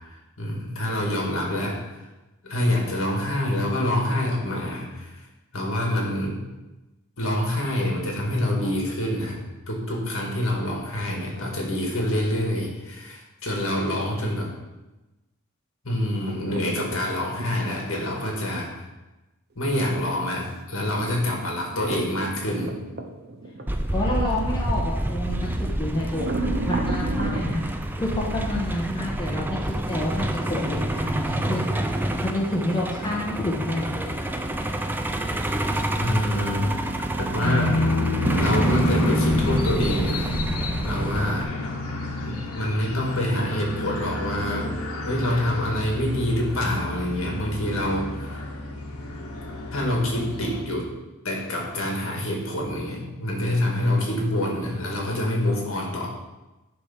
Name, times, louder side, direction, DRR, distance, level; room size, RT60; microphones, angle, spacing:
voice 1, 0.4-1.8 2.4-5.1 5.5-6.4 7.2-9.4 9.7-14.5 15.8-18.7 19.6-22.7 36.0-36.7 37.2-37.8 38.4-40.4 40.8-41.5 42.2-48.4 49.7-50.9 51.2-56.1, left 1 dB, 60° left, -1 dB, 1.8 m, -26 dB
sound 1, 16.3-17.7 19.7-24.9 25.2-25.4 26.1-27.7, right 2 dB, 45° right, 0.6 m, -33 dB
Truck, 23.7-41.4, right 1 dB, 10° right, 0.3 m, -27 dB
voice 2, 23.9-25.5 25.8-27.6 28.0-29.6 29.9-31.8 32.2-34.1, left 1 dB, 20° left, -5 dB, 1.1 m, -28 dB
sound 2, 37.4-50.6, left 1 dB, 75° left, 1.2 m, -29 dB
10.0 x 3.4 x 5.7 m, 1.1 s
head